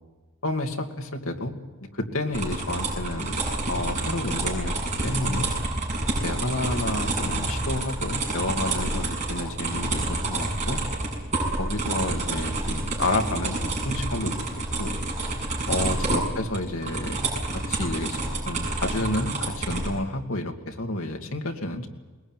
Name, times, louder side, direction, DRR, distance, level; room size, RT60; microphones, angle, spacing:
voice 1, 0.4-1.5 1.9-3.4 3.7-4.8 5.0-5.5 6.2-10.8 11.6-14.4 14.8-15.0 15.7-17.2 17.5-18.2 18.4-21.9, left 2 dB, 80° left, 3 dB, 2.5 m, -30 dB
sound 1, 2.3-19.9, right 2 dB, 35° right, 7.6 m, -28 dB
22.0 x 20.5 x 9.2 m, 1.3 s
head